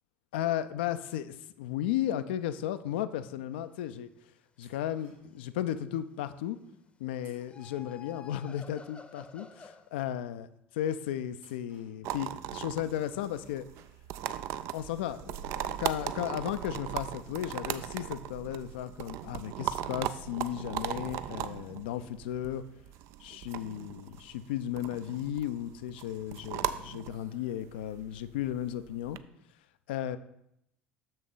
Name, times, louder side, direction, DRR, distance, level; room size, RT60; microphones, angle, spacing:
voice 1, 0.3-4.1 4.6-6.6 7.0-10.5 10.8-13.7 14.7-22.6 23.2-29.2 29.9-30.2, left 11 dB, 65° left, 12 dB, 0.4 m, -35 dB
sound 1, 4.6-5.5 7.2-8.3 11.4-12.3, right 3 dB, 70° right, 2.7 m, -64 dB
sound 2, 5.2-6.2 7.3-9.9, left 5 dB, 20° left, 0.7 m, -51 dB
sound 3, 12.0-29.2, right 11 dB, 50° right, 0.3 m, -38 dB
6.6 x 6.3 x 4.0 m, 0.80 s
figure-of-eight pair, 65°, 6 cm